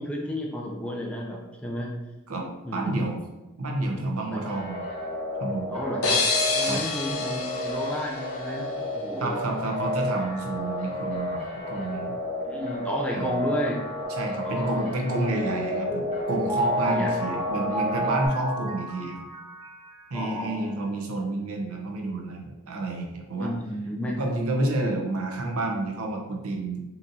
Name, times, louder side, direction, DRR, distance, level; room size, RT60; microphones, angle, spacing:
voice 1, 0.0-1.9 2.6-3.1 4.3-4.6 5.7-6.2 6.5-9.4 12.4-13.8 14.4-14.9 16.8-17.1 20.1-20.8 23.4-24.2, equal, 5° left, -1 dB, 0.4 m, -32 dB
voice 2, 2.7-3.2 3.6-4.8 5.4-5.7 6.6-6.8 9.2-12.1 13.1-13.4 14.2-19.2 20.1-23.5 24.2-26.8, right 2 dB, 70° right, 1 dB, 0.6 m, -29 dB
sound 1, 4.4-18.3, left 1 dB, 30° left, 0.8 m, -32 dB
sound 2, 6.0-8.8, left 4 dB, 70° left, 0.6 m, -28 dB
Mallet percussion, 15.2-20.2, right 1 dB, 15° right, 0.8 m, -31 dB
3.7 x 2.9 x 2.6 m, 1.0 s
head